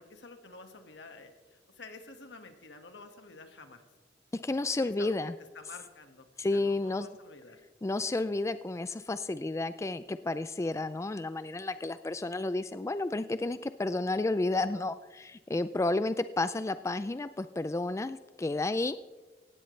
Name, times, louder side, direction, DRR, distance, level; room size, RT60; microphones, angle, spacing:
voice 1, 0.0-3.8 4.8-5.2 5.5-7.6, left 3 dB, 75° left, 6 dB, 1.7 m, -50 dB
voice 2, 4.3-5.3 6.4-7.1 7.8-19.0, left 2 dB, 15° left, 13 dB, 0.3 m, -31 dB
17.5 x 17.0 x 3.3 m, 1.2 s
head